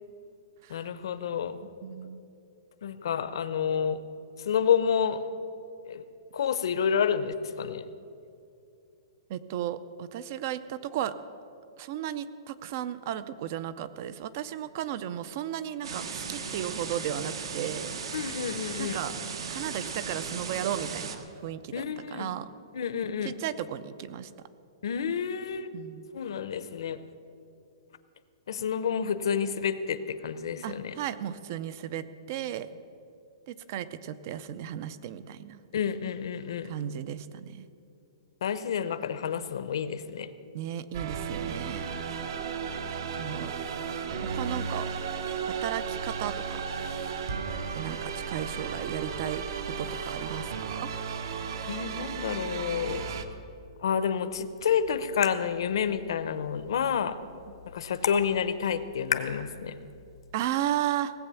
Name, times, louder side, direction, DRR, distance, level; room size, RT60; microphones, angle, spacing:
voice 1, 0.7-1.6 2.8-4.0 4.4-5.2 5.9-6.0 6.3-7.8 18.1-19.0 21.7-22.3 22.7-23.3 24.8-25.7 26.1-27.0 28.5-30.9 35.7-36.7 38.4-40.3 51.7-53.0 53.8-57.2 57.7-59.8, left 7 dB, 60° left, 12 dB, 0.8 m, -29 dB
voice 2, 1.8-2.2 9.3-11.1 11.8-17.9 18.8-19.2 19.5-22.5 23.2-24.5 25.7-26.1 30.6-32.7 33.5-35.6 36.6-37.7 40.5-41.9 43.2-43.5 44.2-44.9 45.5-46.6 47.7-50.9 60.3-61.1, right 11 dB, 35° right, 15 dB, 0.5 m, -35 dB
sound 1, 15.8-21.2, right 5 dB, 70° right, 1.2 m, -36 dB
sound 2, 40.9-53.3, right 6 dB, 50° right, 0.9 m, -34 dB
sound 3, 54.3-60.3, left 7 dB, 85° left, 1.1 m, -39 dB
17.5 x 8.0 x 6.9 m, 2.6 s
hypercardioid pair, 175°, 3 cm